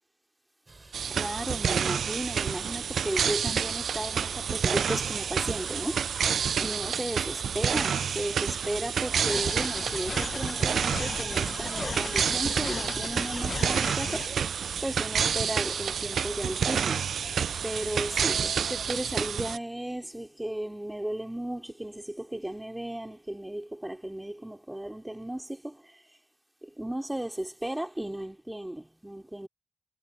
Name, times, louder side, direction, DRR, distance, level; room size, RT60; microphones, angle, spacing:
sound 1, 0.7-19.3, right 3 dB, 35° right, 3.4 m, -48 dB
magnetic valves, 0.9-19.6, right 7 dB, 70° right, 0.4 m, -29 dB
voice 1, 1.1-6.1 6.6-17.1 17.6-26.2 26.6-29.5, right 1 dB, 10° right, 4.3 m, -35 dB
sound 2, 9.3-14.3, left 4 dB, 50° left, 1.3 m, -37 dB
supercardioid pair, 45°, 0 cm